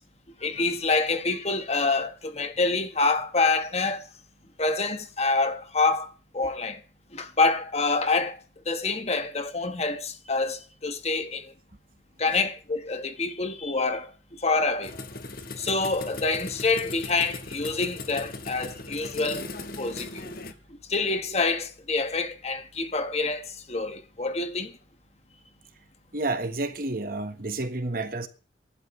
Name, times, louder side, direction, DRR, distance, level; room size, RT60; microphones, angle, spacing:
voice 1, 0.4-4.0 4.6-6.1 6.3-6.8 7.1-8.4 8.7-11.5 12.2-14.1 14.4-14.9 15.6-19.4 19.8-20.3 20.9-24.7, left 3 dB, 35° left, 1.5 m, -26 dB
sound 1, 14.8-20.5, left 3 dB, 50° left, 1.5 m, -38 dB
voice 2, 26.1-28.3, right 2 dB, 50° right, 1.4 m, -30 dB
24.0 x 12.0 x 3.3 m
head